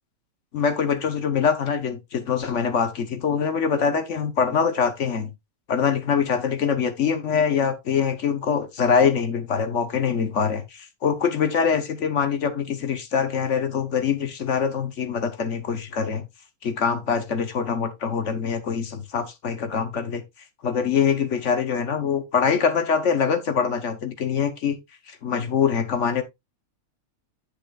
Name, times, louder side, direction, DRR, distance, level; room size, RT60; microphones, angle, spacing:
voice 1, 0.5-5.3 5.7-16.3 16.6-20.2 20.6-24.8 25.1-26.2, left 6 dB, 60° left, 1.2 m, -24 dB
10.0 x 6.5 x 2.3 m
omnidirectional pair, 1.5 m